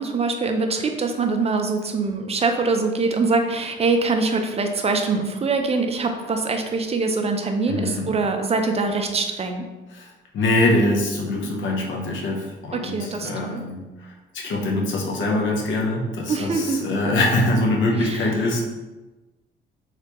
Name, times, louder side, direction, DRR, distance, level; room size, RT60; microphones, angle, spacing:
voice 1, 0.0-9.7 12.7-13.6 16.3-16.8 18.0-18.2, right 3 dB, 30° right, 5 dB, 0.5 m, -23 dB
voice 2, 7.7-8.1 9.9-18.6, left 2 dB, 70° left, 0 dB, 0.8 m, -23 dB
3.3 x 3.2 x 2.9 m, 1.2 s
cardioid pair, 90°, 20 cm